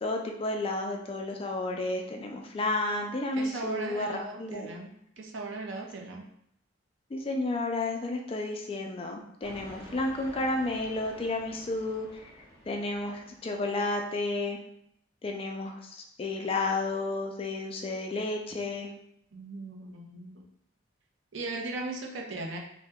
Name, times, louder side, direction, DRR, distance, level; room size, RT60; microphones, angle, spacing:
voice 1, 0.0-4.7 7.1-12.2 12.7-14.6 15.2-18.9, left 2 dB, 30° left, 2 dB, 0.3 m, -32 dB
voice 2, 3.3-6.2 19.3-20.4 21.3-22.6, right 2 dB, 65° right, 0 dB, 0.6 m, -38 dB
sound 1, 9.4-13.9, equal, 15° right, 0.6 m, -50 dB
2.8 x 2.1 x 3.4 m, 0.75 s
head